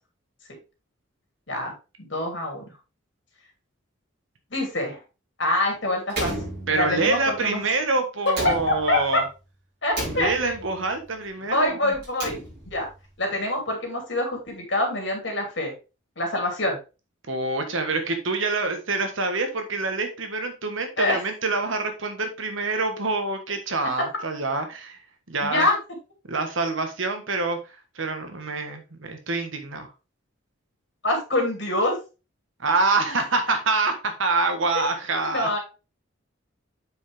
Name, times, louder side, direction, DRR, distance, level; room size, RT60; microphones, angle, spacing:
voice 1, 2.0-2.6 4.5-5.0 5.4-6.3 6.7-7.6 8.4-8.5 8.9-9.2 9.8-10.3 11.5-12.4 12.7-12.9 13.2-15.7 16.2-16.8 21.0-21.2 25.4-25.8 31.0-32.0 34.7-34.8 35.2-35.6, left 1 dB, 60° left, 1 dB, 2.7 m, -25 dB
Slam, 6.1-7.2 8.3-9.2 9.9-10.8 11.9-12.9, right 1 dB, 50° right, 4.7 m, -33 dB
voice 2, 6.7-9.2 10.2-11.9 17.3-25.0 25.3-25.7 26.3-29.9 32.6-35.5, right 3 dB, 70° right, 6 dB, 1.5 m, -26 dB
8.4 x 4.9 x 3.4 m, 0.30 s
head